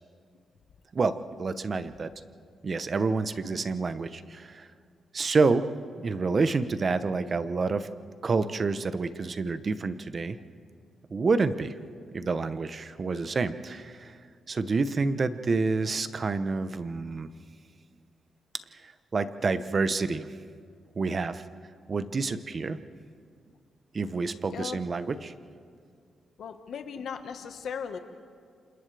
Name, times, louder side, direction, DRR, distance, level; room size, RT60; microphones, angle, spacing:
voice 1, 0.9-2.1 2.6-4.7 5.1-5.7 6.0-7.9 8.2-10.4 11.1-11.7 12.1-14.2 14.5-17.3 18.8-20.3 21.0-21.4 21.9-22.8 23.9-25.3, right 4 dB, 40° right, 12 dB, 0.8 m, -28 dB
voice 2, 24.5-24.8 26.4-28.0, left 7 dB, 70° left, 7 dB, 1.4 m, -37 dB
29.0 x 27.0 x 3.4 m, 2.1 s
cardioid pair, 105°, 0 cm